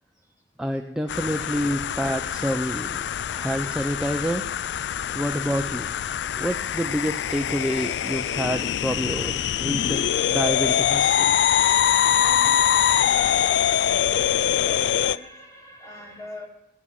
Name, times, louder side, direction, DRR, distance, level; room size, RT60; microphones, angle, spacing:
voice 1, 0.6-4.4 5.1-5.9 6.4-11.3, equal, 5° right, 3 dB, 0.5 m, -28 dB
sound 1, 1.1-15.2, left 9 dB, 70° left, 0.3 m, -23 dB
voice 2, 12.2-13.5 14.4-16.5, equal, 20° left, 0 dB, 2.5 m, -41 dB
16.0 x 6.3 x 7.4 m, 0.92 s
head